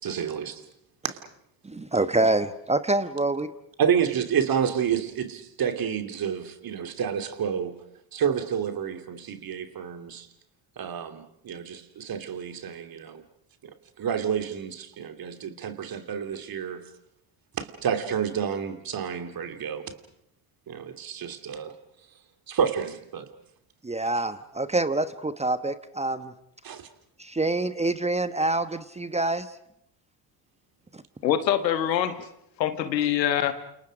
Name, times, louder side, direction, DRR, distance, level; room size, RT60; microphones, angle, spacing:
voice 1, 0.0-0.6 1.0-1.2 3.8-7.8 8.1-10.3 10.8-13.2 14.0-16.8 17.6-19.9 20.7-21.7 22.5-23.3 26.6-26.9, right 7 dB, 45° right, 7 dB, 2.9 m, -29 dB
voice 2, 1.6-3.5 23.8-26.3 27.2-29.5 30.9-31.0, right 2 dB, 15° right, 12 dB, 1.2 m, -26 dB
voice 3, 31.2-32.3 32.6-33.5, left 10 dB, 80° left, 10 dB, 1.7 m, -24 dB
30.0 x 28.0 x 5.1 m, 0.76 s
hypercardioid pair, 55°, 50 cm